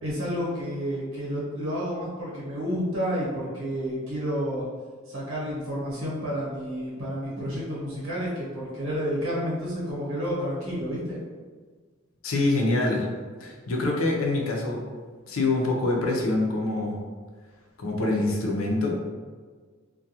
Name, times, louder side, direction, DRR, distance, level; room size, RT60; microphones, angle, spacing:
voice 1, 0.0-4.6 5.1-11.2, equal, 85° right, -6 dB, 1.1 m, -30 dB
voice 2, 12.2-13.1 13.4-14.8 15.3-17.0 17.8-19.1, left 2 dB, 85° left, 0 dB, 0.5 m, -25 dB
2.3 x 2.2 x 2.7 m, 1.5 s
head